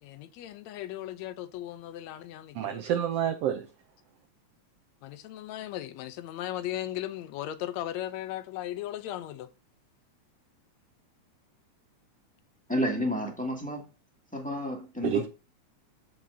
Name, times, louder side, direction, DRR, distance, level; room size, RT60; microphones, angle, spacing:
voice 1, 0.0-2.9 5.0-9.5, left 13 dB, 75° left, 1.9 m, -37 dB
voice 2, 2.5-3.7 15.0-15.3, right 9 dB, 80° right, 1.4 m, -28 dB
voice 3, 12.7-13.9 14.3-15.3, equal, 5° left, 1.5 m, -31 dB
13.5 x 4.7 x 2.7 m
omnidirectional pair, 3.4 m